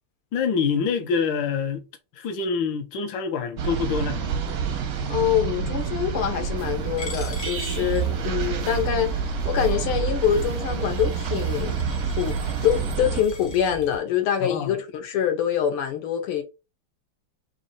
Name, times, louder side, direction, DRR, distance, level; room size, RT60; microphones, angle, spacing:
voice 1, 0.3-1.9 2.1-4.2 14.4-14.8, left 5 dB, 70° left, 1.4 m, -26 dB
sound 1, 3.6-13.2, right 6 dB, 65° right, 0.9 m, -28 dB
voice 2, 5.1-11.7 12.0-12.4 12.6-16.4, left 9 dB, 85° left, 1.8 m, -25 dB
sound 2, 6.6-14.0, right 8 dB, 85° right, 1.6 m, -37 dB
Coin (dropping), 7.0-13.7, left 3 dB, 50° left, 0.7 m, -44 dB
4.1 x 2.7 x 4.0 m
omnidirectional pair, 2.4 m